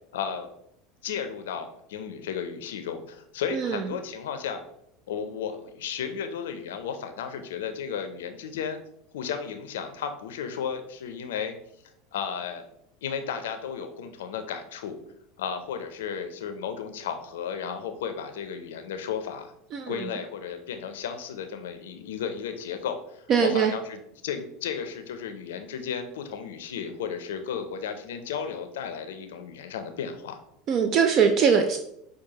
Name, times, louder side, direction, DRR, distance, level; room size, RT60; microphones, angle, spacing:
voice 1, 0.1-0.5 1.0-4.6 5.1-8.8 9.1-11.6 12.1-12.6 13.0-15.0 15.4-19.5 19.9-30.4, left 7 dB, 75° left, 8 dB, 0.5 m, -34 dB
voice 2, 23.3-23.7 30.7-31.8, right 6 dB, 50° right, 6 dB, 0.4 m, -21 dB
6.2 x 2.3 x 2.8 m, 0.75 s
hypercardioid pair, 80°, 0 cm